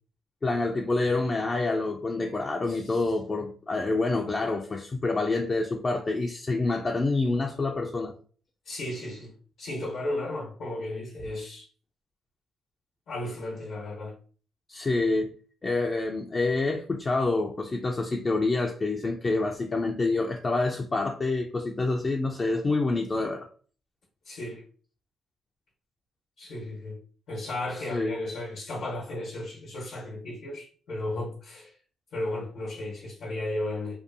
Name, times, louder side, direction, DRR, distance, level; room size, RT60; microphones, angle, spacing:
voice 1, 0.4-8.1 14.7-15.3 15.6-23.5 27.9-28.2, left 3 dB, 30° left, 0.3 m, -27 dB
voice 2, 2.7-3.0 8.7-9.3 9.6-11.7 13.1-14.1 24.3-24.6 26.4-27.0 27.3-31.7 32.1-34.0, left 1 dB, 75° left, 0.8 m, -34 dB
2.6 x 2.2 x 2.5 m
cardioid pair, 90°, 0 cm